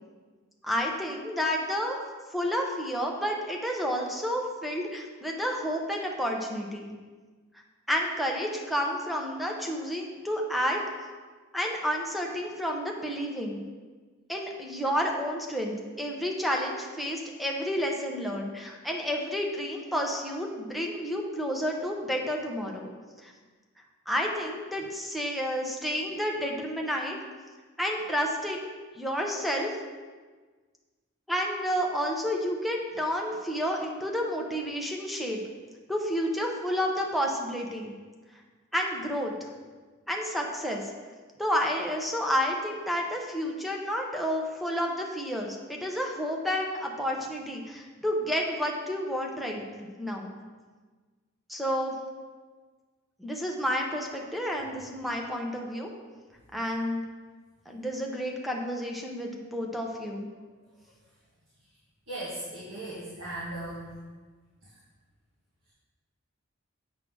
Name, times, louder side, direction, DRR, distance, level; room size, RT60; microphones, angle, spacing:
voice 1, 0.6-2.0 2.3-7.0 7.9-10.8 11.5-13.6 14.3-22.9 23.2-23.3 24.1-27.2 27.8-28.7 29.0-29.7 31.3-35.4 35.9-37.9 38.7-39.4 40.1-40.9 41.4-50.3 51.5-52.0 53.2-55.9 56.5-57.0 57.7-60.3, equal, ahead, 0 dB, 0.8 m, -30 dB
voice 2, 62.1-64.0 64.6-64.7, right 1 dB, 65° right, -9 dB, 1.8 m, -37 dB
7.5 x 3.8 x 6.1 m, 1.4 s
head